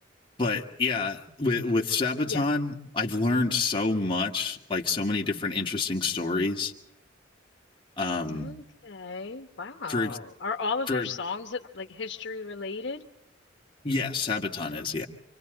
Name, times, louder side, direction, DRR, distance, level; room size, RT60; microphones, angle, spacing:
voice 1, 0.4-6.7 8.0-8.5 9.9-10.1 10.9-11.1 13.8-15.1, left 3 dB, 25° left, -1 dB, 2.2 m, -27 dB
voice 2, 3.3-3.6 8.3-13.1, left 4 dB, 65° left, 5 dB, 1.2 m, -35 dB
28.5 x 25.0 x 4.0 m, 0.80 s
head